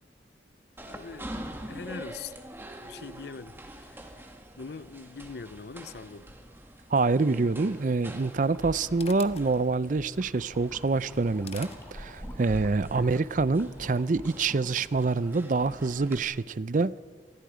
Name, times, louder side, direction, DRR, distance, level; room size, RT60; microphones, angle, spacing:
voice 1, 0.8-1.3 1.7-2.4 2.8-6.3 13.0-13.2, left 4 dB, 65° left, 0.6 m, -43 dB
sound 1, 0.8-16.2, right 1 dB, 15° right, 1.9 m, -44 dB
voice 2, 6.9-17.0, right 3 dB, 45° right, 0.5 m, -26 dB
sound 2, 8.2-12.6, left 5 dB, 35° left, 1.0 m, -49 dB
sound 3, 8.2-15.0, left 1 dB, 15° left, 3.0 m, -53 dB
26.5 x 20.0 x 5.0 m
head